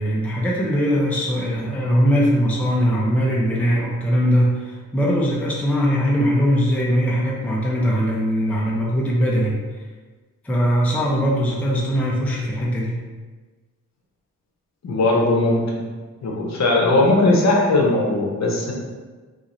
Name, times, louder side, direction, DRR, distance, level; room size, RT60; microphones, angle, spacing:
voice 1, 0.0-9.6 10.4-13.0, equal, 5° left, -4 dB, 0.4 m, -20 dB
voice 2, 14.8-15.8 16.2-18.7, left 2 dB, 55° left, -2 dB, 0.7 m, -18 dB
3.9 x 2.4 x 2.9 m, 1.4 s
wide cardioid pair, 135°, 32 cm